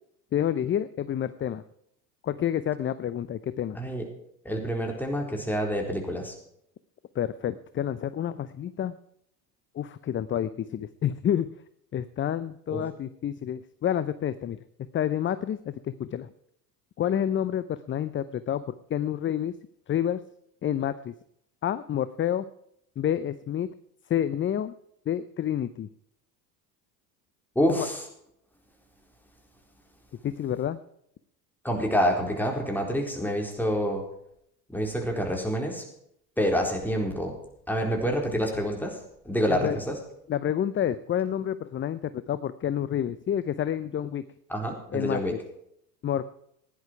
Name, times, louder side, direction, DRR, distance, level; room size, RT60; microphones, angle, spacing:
voice 1, 0.3-1.6 2.2-3.8 7.1-8.9 9.7-11.5 11.9-14.6 14.9-16.3 17.0-18.6 18.9-19.6 19.9-20.2 20.6-21.1 21.6-22.4 23.0-23.7 24.1-24.7 25.1-25.9 30.2-30.8 39.5-39.8 40.3-44.2 44.9-45.4 46.0-46.2, left 10 dB, 25° left, 14 dB, 0.6 m, -29 dB
voice 2, 4.4-6.3 12.7-12.8 27.6-28.0 31.6-34.0 34.7-35.8 36.4-37.3 37.7-39.0 39.2-40.0 44.5-45.3, equal, 5° left, 1 dB, 4.2 m, -27 dB
16.0 x 11.0 x 4.6 m, 0.73 s
hypercardioid pair, 80°, 48 cm